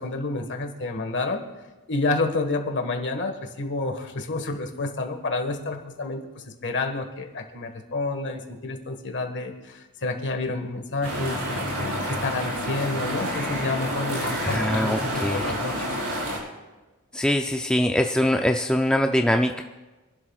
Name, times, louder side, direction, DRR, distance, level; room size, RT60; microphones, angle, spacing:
voice 1, 0.0-1.4 1.9-15.7, left 2 dB, 55° left, 5 dB, 1.6 m, -29 dB
sound 1, 11.0-16.4, equal, 75° right, 5.4 m, -29 dB
voice 2, 14.4-15.6 17.1-19.6, left 1 dB, 5° left, 4 dB, 0.4 m, -23 dB
27.0 x 11.5 x 2.4 m, 1.2 s
head